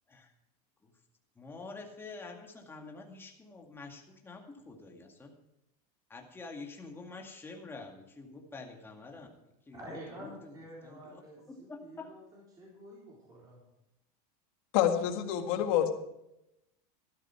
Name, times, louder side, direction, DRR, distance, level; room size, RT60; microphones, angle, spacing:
voice 1, 1.4-5.3 6.1-9.3 9.7-10.6 10.8-12.1, left 3 dB, 10° left, 1 dB, 2.0 m, -47 dB
voice 2, 9.7-13.6, equal, 20° right, -5 dB, 4.2 m, -49 dB
voice 3, 14.7-15.9, left 10 dB, 60° left, 6 dB, 1.7 m, -27 dB
13.5 x 12.0 x 4.6 m, 0.88 s
supercardioid pair, 145°, 19 cm